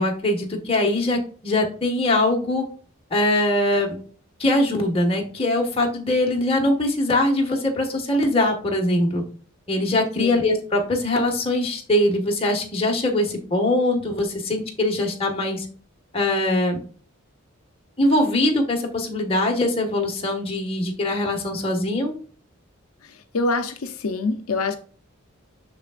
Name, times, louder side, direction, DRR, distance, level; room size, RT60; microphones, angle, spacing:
voice 1, 0.0-2.6 3.1-4.0 4.4-9.2 9.7-15.6 16.1-16.8 18.0-22.1, left 1 dB, 25° left, 1.6 m, -22 dB
voice 2, 23.0-24.8, left 3 dB, 85° left, 0.7 m, -25 dB
6.7 x 6.6 x 2.5 m
head